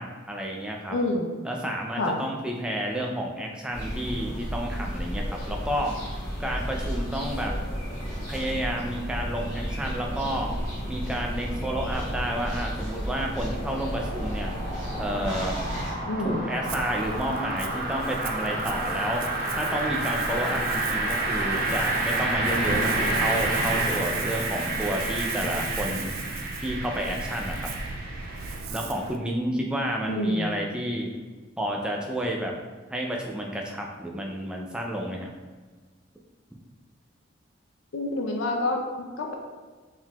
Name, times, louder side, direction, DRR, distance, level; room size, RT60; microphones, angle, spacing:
voice 1, 0.0-1.0 1.4-5.9 6.4-7.6 8.3-10.5 10.9-14.5 15.0-15.5 16.2-19.3 19.6-26.1 26.6-27.7 28.7-31.1 31.6-32.5 32.9-35.3, right 1 dB, 5° right, 0 dB, 0.4 m, -30 dB
voice 2, 0.9-1.3 2.0-2.2 16.1-16.4 30.1-30.5 37.9-39.3, left 2 dB, 65° left, 1 dB, 0.5 m, -27 dB
sound 1, 3.7-15.9, equal, 20° left, 1.3 m, -32 dB
long-sweep, 11.1-28.6, right 2 dB, 45° right, 0.9 m, -30 dB
Ocean, 16.6-29.2, right 5 dB, 80° right, 0.4 m, -37 dB
4.5 x 3.7 x 2.3 m, 1.4 s
head